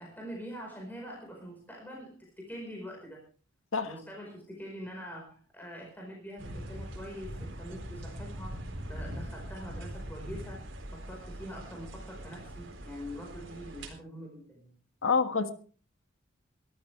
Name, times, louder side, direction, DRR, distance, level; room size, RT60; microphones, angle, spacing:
voice 1, 0.0-3.2 3.8-8.6 8.9-10.6 10.9-14.7, equal, 10° left, -1 dB, 4.7 m, -44 dB
sound 1, 6.4-13.9, equal, 65° right, 4.0 m, -42 dB
voice 2, 15.0-15.5, left 5 dB, 75° left, 9 dB, 1.6 m, -27 dB
22.5 x 13.5 x 3.4 m, 0.41 s
head